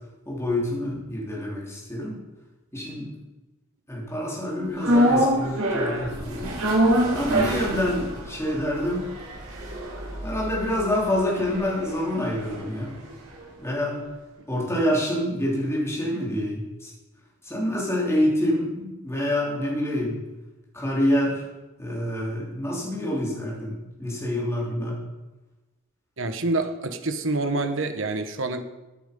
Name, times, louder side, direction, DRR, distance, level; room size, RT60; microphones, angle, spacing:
voice 1, 0.2-2.2 2.7-3.1 3.9-6.5 7.1-9.1 10.2-12.9 13.6-14.0 14.5-16.9 17.4-20.2 20.7-21.5 21.8-25.0, left 1 dB, 10° left, -4 dB, 3.4 m, -27 dB
sound 1, 4.8-13.1 13.4-13.5, equal, 80° right, 5.1 m, -26 dB
voice 2, 26.2-28.6, right 2 dB, 60° right, 8 dB, 1.1 m, -27 dB
15.0 x 8.7 x 5.3 m, 1.1 s
head